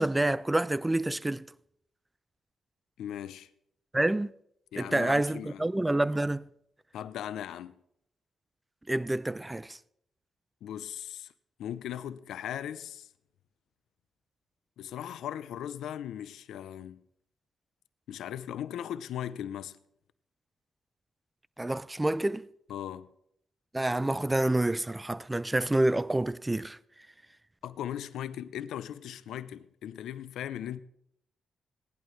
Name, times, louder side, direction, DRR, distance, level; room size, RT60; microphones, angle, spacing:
voice 1, 0.0-1.5 3.9-4.3 4.8-6.5 8.9-9.8 21.6-22.5 23.7-26.8, right 1 dB, 15° right, 0.5 m, -28 dB
voice 2, 3.0-3.5 4.7-5.6 6.9-7.8 10.6-11.3 11.6-13.1 14.8-17.0 18.1-19.8 22.7-23.1 27.6-30.8, left 10 dB, 80° left, 0.6 m, -38 dB
18.0 x 11.0 x 3.2 m
supercardioid pair, 50°, 0 cm